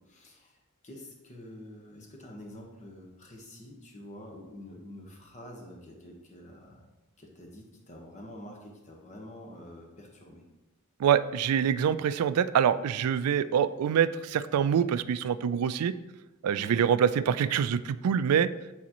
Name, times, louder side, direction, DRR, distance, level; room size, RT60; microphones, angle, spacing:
voice 1, 0.1-0.6 0.8-6.9 7.2-10.4 16.5-16.8, left 1 dB, 35° left, 0 dB, 1.1 m, -47 dB
voice 2, 11.0-15.9 16.4-18.5, right 8 dB, 85° right, 15 dB, 0.3 m, -25 dB
8.5 x 4.1 x 2.9 m, 1.0 s
head